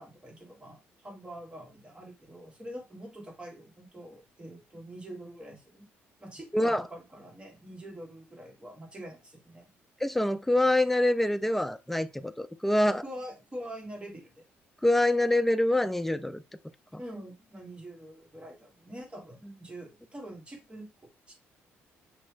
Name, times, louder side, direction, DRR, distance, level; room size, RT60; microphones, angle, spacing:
voice 1, 0.0-5.9 6.2-9.7 12.9-14.4 17.0-21.3, right 1 dB, 20° right, 1.5 m, -45 dB
voice 2, 10.0-13.0 14.8-16.4 16.9-17.0, left 1 dB, 5° left, 0.3 m, -25 dB
2.9 x 2.2 x 3.3 m
supercardioid pair, 65°, 5 cm